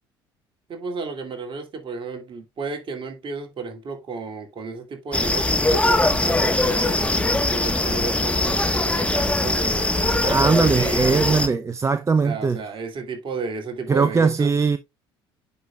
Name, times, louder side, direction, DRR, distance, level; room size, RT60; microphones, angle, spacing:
voice 1, 0.7-11.6 12.2-14.5, right 4 dB, 40° right, 2.5 m, -33 dB
sound 1, 5.1-11.5, left 2 dB, 10° left, 1.3 m, -21 dB
voice 2, 10.2-12.6 13.9-14.8, right 4 dB, 25° right, 0.6 m, -20 dB
9.4 x 5.3 x 2.3 m
hypercardioid pair, 60°, 13 cm